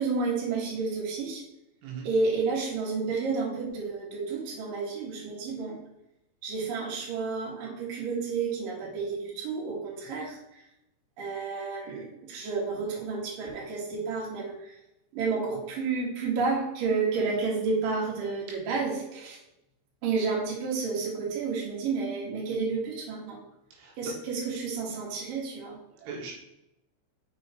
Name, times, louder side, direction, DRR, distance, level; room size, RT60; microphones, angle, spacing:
voice 1, 0.0-1.4 2.0-5.8 6.4-10.6 11.2-14.7 15.1-19.4 20.0-23.4 24.0-26.1, right 4 dB, 50° right, -3 dB, 3.2 m, -31 dB
voice 2, 23.7-24.1 26.1-26.3, right 3 dB, 80° right, -1 dB, 4.0 m, -39 dB
6.5 x 6.2 x 4.3 m, 0.86 s
omnidirectional pair, 5.8 m